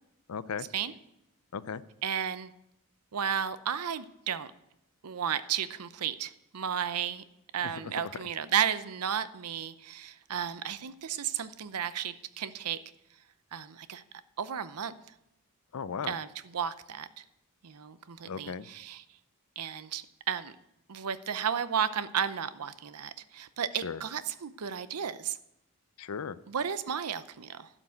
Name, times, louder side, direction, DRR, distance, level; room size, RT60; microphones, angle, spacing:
voice 1, 0.3-0.7 1.5-1.8 7.6-8.2 15.7-16.1 18.3-18.7 23.8-24.0 26.0-26.4, left 6 dB, 75° left, 16 dB, 0.5 m, -37 dB
voice 2, 2.0-2.5 3.1-4.5 5.0-7.2 7.5-12.8 13.5-14.0 14.4-14.9 16.0-16.3 16.5-17.2 17.6-19.0 19.6-20.5 20.9-25.4 26.5-27.7, right 8 dB, 90° right, 14 dB, 0.6 m, -33 dB
12.0 x 6.0 x 8.1 m, 0.85 s
head